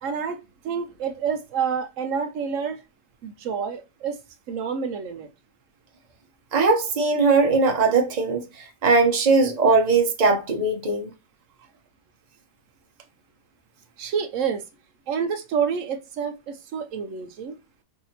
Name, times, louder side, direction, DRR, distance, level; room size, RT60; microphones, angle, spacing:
voice 1, 0.0-2.8 3.2-4.2 4.5-5.3 14.0-14.6 15.1-17.5, right 6 dB, 70° right, 0.8 m, -28 dB
voice 2, 6.5-8.4 8.8-11.1, right 4 dB, 35° right, 0.7 m, -20 dB
4.7 x 2.6 x 2.8 m
omnidirectional pair, 1.7 m